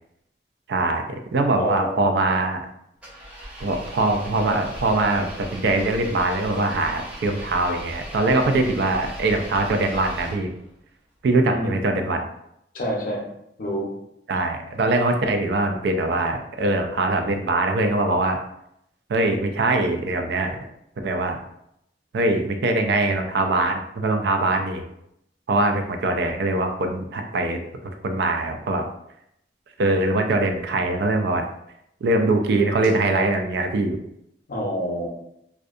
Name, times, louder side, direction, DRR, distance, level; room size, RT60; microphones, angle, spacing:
voice 1, 0.7-2.6 3.6-10.5 11.2-12.2 14.3-18.4 19.1-20.6 21.0-21.4 22.1-24.8 25.5-27.6 28.0-28.8 29.8-31.4 32.0-34.0, right 2 dB, 70° right, 5 dB, 0.4 m, -22 dB
voice 2, 1.6-2.0 11.4-11.7 12.7-13.3 13.6-13.9 34.5-35.1, equal, 50° left, -1 dB, 0.6 m, -27 dB
Engine, 3.0-10.7, equal, 5° right, 0.5 m, -38 dB
2.6 x 2.2 x 2.4 m, 0.78 s
head